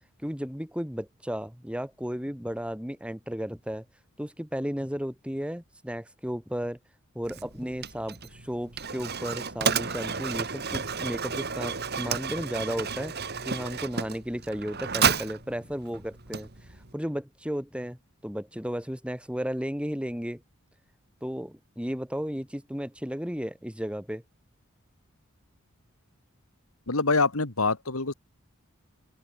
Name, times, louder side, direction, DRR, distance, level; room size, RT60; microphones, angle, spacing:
voice 1, 0.2-3.9 4.2-6.8 7.2-16.5 16.9-18.0 18.2-20.4 21.2-24.2, equal, 5° right, 3.6 m, -34 dB
Mechanisms, 7.2-16.9, right 6 dB, 50° right, 3.5 m, -32 dB
voice 2, 26.9-28.1, left 3 dB, 85° left, 2.4 m, -25 dB
open air
head